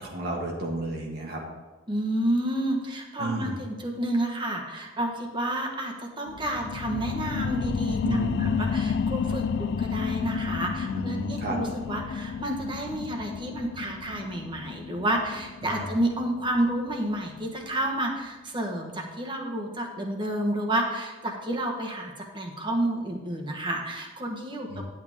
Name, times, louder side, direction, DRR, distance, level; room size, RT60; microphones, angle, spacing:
voice 1, 0.0-1.4 3.2-3.5 8.0-8.6 10.8-11.6 15.6-15.8 24.7-24.8, right 1 dB, 55° right, -1 dB, 1.5 m, -32 dB
voice 2, 1.9-24.8, right 1 dB, 25° right, 2 dB, 1.2 m, -30 dB
sound 1, 6.3-17.4 17.9-18.0, left 6 dB, 60° left, 0.3 m, -31 dB
10.5 x 8.5 x 3.6 m, 1.2 s
head